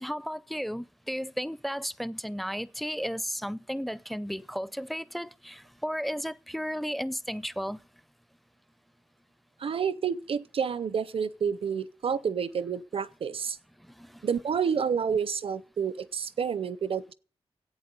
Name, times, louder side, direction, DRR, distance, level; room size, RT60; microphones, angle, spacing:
voice 1, 0.0-7.8 13.9-14.3, equal, ahead, 0.5 m, -34 dB
voice 2, 9.6-13.6 14.2-17.1, right 7 dB, 65° right, 0.6 m, -29 dB
11.0 x 8.5 x 6.8 m
wide cardioid pair, 90°, 10 cm